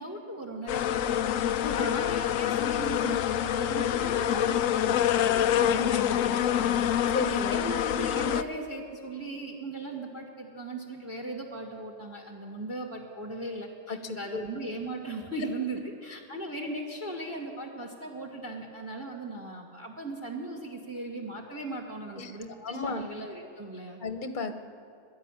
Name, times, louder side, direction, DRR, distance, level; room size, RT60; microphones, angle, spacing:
voice 1, 0.0-24.0, right 2 dB, 10° right, 1 dB, 1.8 m, -38 dB
sound 1, 0.7-8.4, left 10 dB, 85° left, 1.0 m, -26 dB
voice 2, 7.1-7.6 13.9-14.0 14.3-14.4 22.2-23.0 24.0-24.5, left 3 dB, 40° left, 7 dB, 1.3 m, -33 dB
22.0 x 12.5 x 9.8 m, 2.4 s
omnidirectional pair, 1.3 m